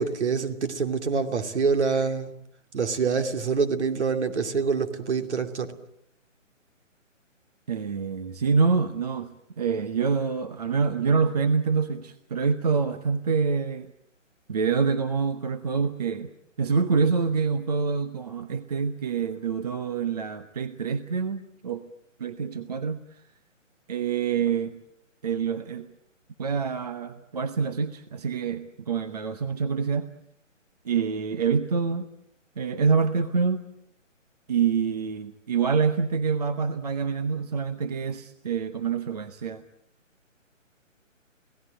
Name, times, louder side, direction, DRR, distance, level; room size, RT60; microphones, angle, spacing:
voice 1, 0.0-2.3 2.7-5.7, right 5 dB, 60° right, 7 dB, 2.8 m, -26 dB
voice 2, 7.7-13.9 14.5-16.3 16.6-21.8 22.2-23.0 23.9-24.8 25.2-25.9 26.4-30.1 30.8-32.1 32.6-33.7 34.5-39.6, right 5 dB, 30° right, 10 dB, 0.9 m, -26 dB
28.5 x 17.5 x 9.0 m, 0.75 s
hypercardioid pair, 165°, 39 cm